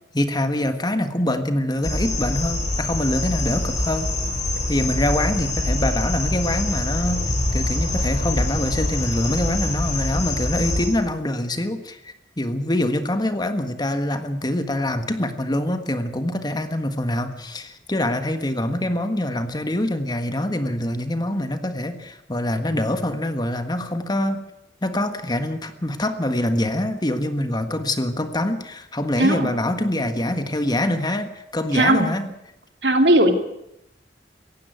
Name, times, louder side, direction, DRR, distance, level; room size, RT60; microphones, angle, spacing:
voice 1, 0.1-4.1 4.7-7.3 7.5-24.4 24.8-32.3, left 1 dB, 25° left, 8 dB, 1.5 m, -24 dB
sound 1, 1.8-10.9, left 1 dB, 45° left, 7.2 m, -25 dB
voice 2, 31.7-32.1 32.8-33.3, right 1 dB, 75° right, 5 dB, 2.8 m, -17 dB
18.0 x 16.0 x 9.4 m, 0.83 s
head